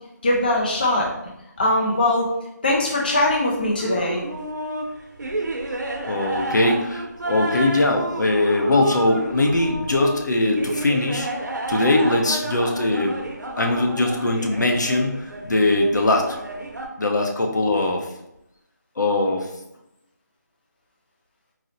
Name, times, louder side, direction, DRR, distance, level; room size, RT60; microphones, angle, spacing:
voice 1, 0.2-1.1 1.6-2.3 2.6-4.2, left 1 dB, 30° left, -3 dB, 0.4 m, -21 dB
sound 1, 3.8-16.9, right 2 dB, 70° right, 0.6 m, -31 dB
voice 2, 6.1-11.3 11.7-13.2 13.6-16.4 17.0-18.1 19.0-19.5, left 2 dB, 70° left, 2 dB, 0.6 m, -21 dB
4.0 x 2.0 x 2.7 m, 0.86 s
figure-of-eight pair, 170°, 10 cm